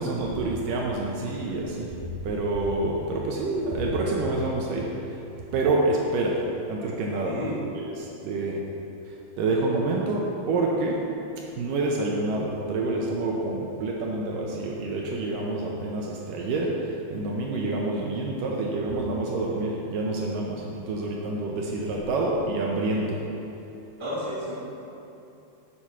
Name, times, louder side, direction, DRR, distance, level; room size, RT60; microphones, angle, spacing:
voice 1, 0.0-1.9 2.2-5.2 5.5-6.4 6.7-7.4 7.8-8.6 9.1-11.0 11.6-23.2, right 2 dB, 75° right, -2 dB, 2.3 m, -27 dB
voice 2, 7.2-7.6 24.0-24.5, equal, 10° left, -8 dB, 1.4 m, -31 dB
8.5 x 7.7 x 5.6 m, 2.8 s
omnidirectional pair, 4.3 m